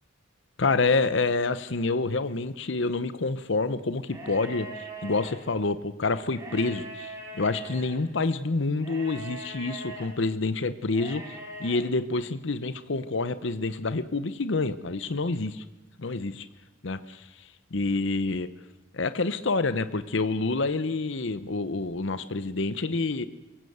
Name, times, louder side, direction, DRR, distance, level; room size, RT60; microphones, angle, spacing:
voice 1, 0.6-11.2 11.6-15.6 16.0-16.5 16.8-18.5 18.9-23.2, left 3 dB, 65° left, 13 dB, 0.8 m, -28 dB
sound 1, 4.0-5.3 6.3-8.0 8.8-10.1 10.9-11.8, right 2 dB, 15° right, 5.1 m, -41 dB
23.5 x 16.0 x 8.0 m, 1.1 s
head